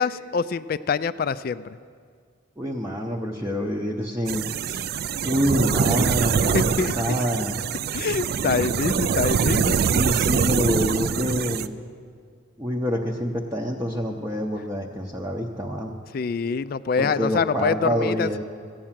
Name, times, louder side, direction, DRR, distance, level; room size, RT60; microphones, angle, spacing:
voice 1, 0.0-1.6 6.5-6.9 7.9-9.8 16.1-18.4, left 5 dB, 45° left, 15 dB, 0.3 m, -25 dB
voice 2, 2.6-4.8 5.2-7.6 9.9-11.8 12.6-16.0 17.0-18.4, equal, 10° right, -2 dB, 0.6 m, -26 dB
sound 1, 4.3-11.7, right 6 dB, 50° right, 0.3 m, -24 dB
15.0 x 8.7 x 7.4 m, 2.1 s
head